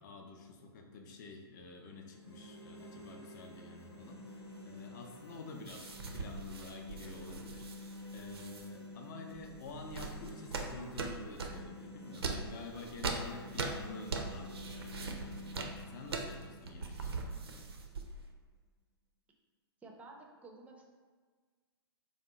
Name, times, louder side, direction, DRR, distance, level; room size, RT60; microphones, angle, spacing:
voice 1, 0.0-17.7, left 3 dB, 45° left, 3 dB, 0.5 m, -49 dB
sound 1, 1.9-17.9, left 1 dB, 80° left, 0.7 m, -50 dB
sound 2, 5.7-8.7 9.3-11.7 12.1-18.3, right 4 dB, 70° right, 0.5 m, -41 dB
voice 2, 19.8-20.8, right 3 dB, 10° right, 0 dB, 0.4 m, -52 dB
3.5 x 2.1 x 3.7 m, 1.5 s
figure-of-eight pair, 110°, 13 cm